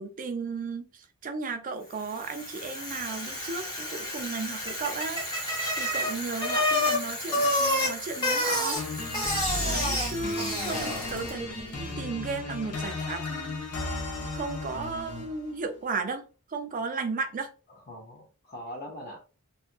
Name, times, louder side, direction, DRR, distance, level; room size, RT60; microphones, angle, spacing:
voice 1, 0.0-5.2 5.7-8.8 9.6-13.6 13.9-14.0 14.3-16.2 16.5-17.5, right 4 dB, 40° right, 0.4 m, -35 dB
Bicycle, 2.0-11.4, left 1 dB, 20° left, 1.1 m, -29 dB
sound 1, 8.7-15.5, left 2 dB, 90° left, 0.7 m, -35 dB
voice 2, 11.1-11.7 17.7-19.2, equal, 45° left, 0.6 m, -43 dB
2.7 x 2.3 x 2.4 m
head